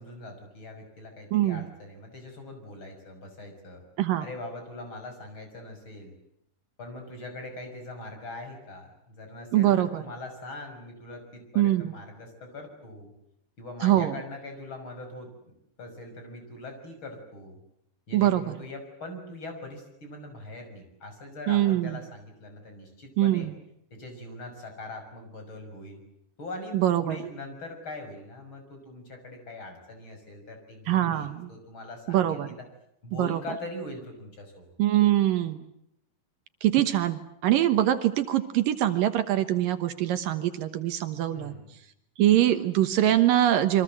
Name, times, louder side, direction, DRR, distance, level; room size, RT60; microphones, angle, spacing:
voice 1, 0.0-3.8 4.2-6.1 6.8-13.1 13.6-17.6 18.1-23.5 23.9-26.0 26.4-32.6 33.0-34.7 41.3-41.7, left 2 dB, 30° left, 5 dB, 6.7 m, -42 dB
voice 2, 1.3-1.7 4.0-4.3 9.5-10.0 11.6-11.9 13.8-14.2 18.1-18.5 21.5-22.0 23.2-23.5 26.7-27.2 30.9-31.5 32.1-32.5 33.1-33.4 34.8-35.7 36.6-41.6 42.2-43.8, right 12 dB, 75° right, 9 dB, 2.8 m, -23 dB
28.0 x 24.0 x 7.7 m, 0.75 s
omnidirectional pair, 4.2 m